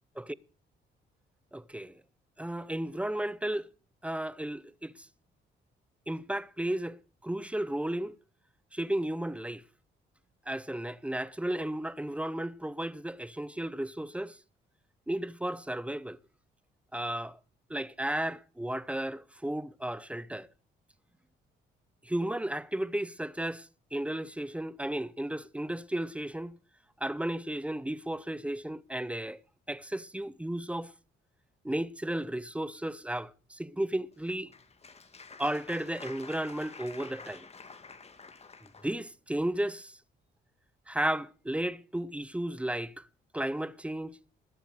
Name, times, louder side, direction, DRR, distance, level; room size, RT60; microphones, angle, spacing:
voice 1, 1.5-2.0 2.4-3.7 4.0-4.9 6.1-8.2 8.7-9.6 10.5-14.4 15.1-16.2 16.9-17.4 17.7-20.5 22.1-26.5 27.0-29.4 29.7-30.9 31.6-34.5 35.4-37.5 38.8-40.0 40.9-43.0 43.3-44.2, right 1 dB, 5° right, 0.6 m, -34 dB
Applause, 34.1-39.0, left 4 dB, 30° left, 2.0 m, -49 dB
20.0 x 7.7 x 6.5 m
cardioid pair, 90°, 20 cm